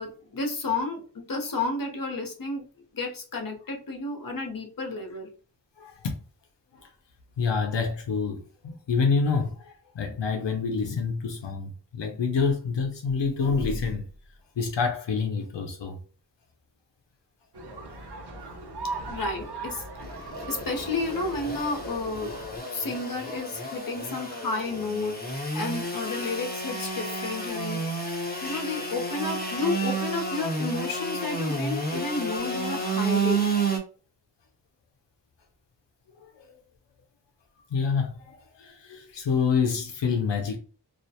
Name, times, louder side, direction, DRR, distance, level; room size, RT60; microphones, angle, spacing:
voice 1, 0.0-2.7 2.9-5.3 19.1-19.8 20.1-22.3 22.7-27.8 28.4-33.5, left 3 dB, 55° left, 0.7 m, -31 dB
voice 2, 5.8-6.1 6.8-6.9 7.4-14.0 14.6-16.0 36.2-36.5 37.7-40.6, left 5 dB, 90° left, 0.6 m, -27 dB
sound 1, 17.5-22.6, right 3 dB, 70° right, 0.7 m, -39 dB
Engine / Sawing, 20.0-33.8, right 3 dB, 20° left, 0.8 m, -31 dB
2.4 x 2.1 x 2.7 m
wide cardioid pair, 50°, 42 cm